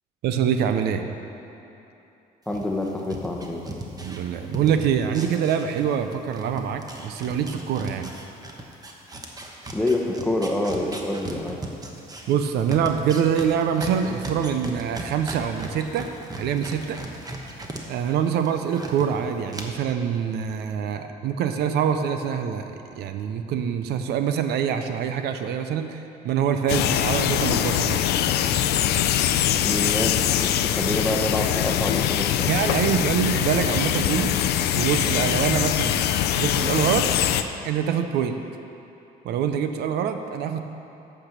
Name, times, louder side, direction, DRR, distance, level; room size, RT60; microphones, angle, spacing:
voice 1, 0.2-1.0 4.0-8.1 12.3-16.1 16.4-17.0 17.9-28.0 32.5-34.3 34.8-36.1 36.4-37.1 37.6-38.4 39.2-40.7, right 8 dB, 75° right, 7 dB, 0.6 m, -25 dB
voice 2, 2.5-3.6 9.7-11.6 29.6-30.5 30.8-32.5, left 1 dB, 5° left, 0 dB, 1.0 m, -27 dB
sound 1, 2.5-6.1 6.3-17.8 18.1-19.0 19.5-19.6, right 2 dB, 20° right, 1.1 m, -36 dB
sound 2, 26.7-37.4, left 11 dB, 75° left, 0.5 m, -23 dB
8.6 x 6.1 x 6.7 m, 2.9 s
cardioid pair, 110°, 17 cm